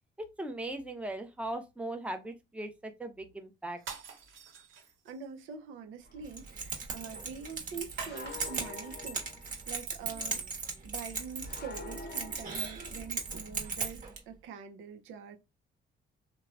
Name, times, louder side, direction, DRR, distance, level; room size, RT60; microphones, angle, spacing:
voice 1, 0.2-3.8, right 1 dB, 5° right, 0.6 m, -39 dB
sound 1, 3.8-5.2 8.0-8.9, right 6 dB, 70° right, 1.2 m, -45 dB
voice 2, 5.0-10.4 10.8-15.4, right 6 dB, 90° right, 0.7 m, -45 dB
sound 2, 6.0-6.2 8.0-9.6 11.4-13.2, left 4 dB, 55° left, 0.6 m, -47 dB
Keys jangling, 6.3-14.2, right 4 dB, 45° right, 1.1 m, -38 dB
3.0 x 2.2 x 2.4 m
cardioid pair, 90°, 20 cm